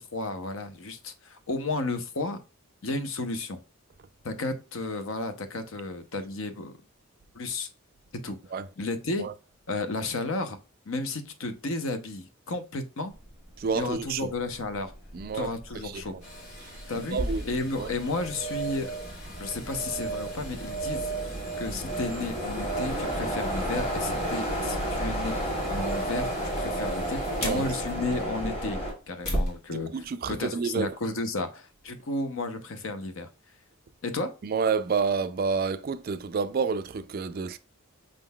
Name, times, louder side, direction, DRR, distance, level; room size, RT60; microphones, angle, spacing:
voice 1, 0.0-2.4 2.8-3.6 4.2-6.7 7.3-7.7 8.2-8.4 8.8-9.3 9.7-10.6 10.9-13.1 13.7-14.9 15.3-16.1 16.9-17.2 17.5-19.0 19.4-21.1 21.6-25.3 25.7-28.8 29.1-33.3 34.0-34.3, left 2 dB, 65° left, 0.7 m, -33 dB
voice 2, 13.6-14.3 15.1-15.5 15.8-16.2 17.0-17.4 17.8-17.9 27.4-27.6 29.7-30.9 34.4-37.6, right 5 dB, 40° right, 0.3 m, -29 dB
sound 1, 14.1-14.2 14.5-28.9, equal, 25° left, 1.6 m, -33 dB
sound 2, 16.2-29.5 30.0-30.1, right 2 dB, 80° left, 1.7 m, -36 dB
5.3 x 3.7 x 2.2 m
head